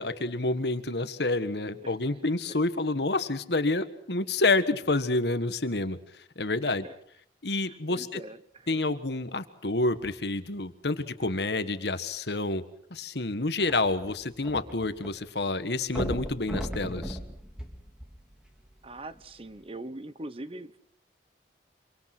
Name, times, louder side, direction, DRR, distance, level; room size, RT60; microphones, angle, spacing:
voice 1, 0.0-6.0 6.3-6.8 7.4-8.2 8.7-12.6 12.9-17.2, left 2 dB, 70° left, 11 dB, 1.6 m, -28 dB
voice 2, 7.7-8.8 18.8-20.8, right 2 dB, 30° right, 14 dB, 1.0 m, -42 dB
sound 1, 13.6-15.1 15.4-15.5 15.9-18.5 19.2-19.3, equal, 5° right, 3.1 m, -36 dB
26.5 x 24.5 x 6.1 m, 0.66 s
head